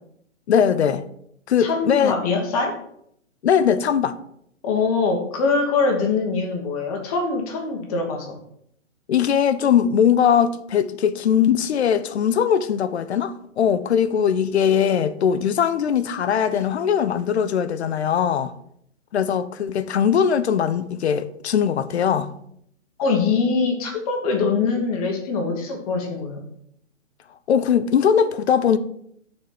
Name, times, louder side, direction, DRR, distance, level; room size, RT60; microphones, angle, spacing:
voice 1, 0.5-1.0 1.5-2.1 3.4-4.2 9.1-18.5 19.1-22.3 27.5-28.8, left 8 dB, 55° left, 0.6 m, -20 dB
voice 2, 1.6-2.7 4.6-8.4 23.0-26.4, left 4 dB, 30° left, 1.3 m, -23 dB
6.5 x 4.2 x 5.8 m
hypercardioid pair, 145°, 38 cm